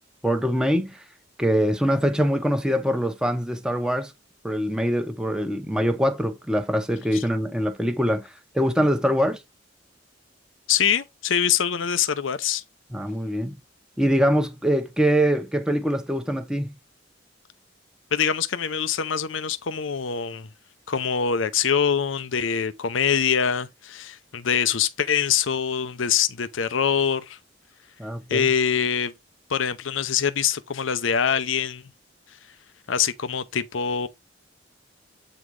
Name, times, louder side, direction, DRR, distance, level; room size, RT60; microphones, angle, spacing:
voice 1, 0.2-1.0 1.4-4.1 4.4-9.4 12.9-13.6 14.0-16.7 28.0-28.5, equal, 5° right, 0.9 m, -23 dB
voice 2, 10.7-12.6 18.1-20.5 20.9-27.4 28.3-29.1 29.5-31.8 32.9-34.1, left 7 dB, 90° left, 0.7 m, -24 dB
8.4 x 4.0 x 4.8 m
head